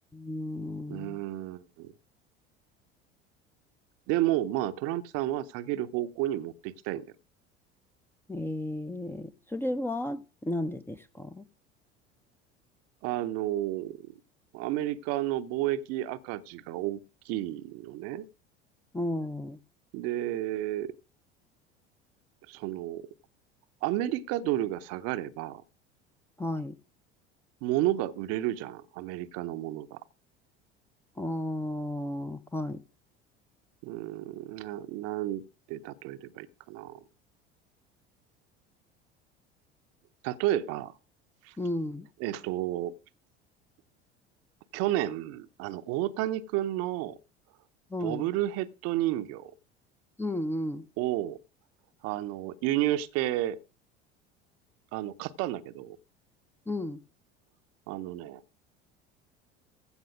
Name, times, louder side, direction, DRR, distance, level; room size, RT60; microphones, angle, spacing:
voice 1, 0.1-1.2 8.3-11.5 18.9-19.6 26.4-26.8 31.2-32.8 41.6-42.1 47.9-48.3 50.2-50.9 56.7-57.0, left 1 dB, 5° left, 0.6 m, -33 dB
voice 2, 0.9-1.9 4.1-7.1 13.0-14.0 14.5-18.3 19.9-20.9 22.5-23.1 23.8-25.6 27.6-30.0 33.8-37.0 40.2-40.9 41.4-41.5 42.2-42.9 44.7-47.2 48.0-49.5 51.0-51.4 52.0-53.6 54.9-56.0 57.9-58.4, right 14 dB, 50° right, 0.7 m, -31 dB
15.5 x 5.5 x 5.0 m
figure-of-eight pair, 70°, 32 cm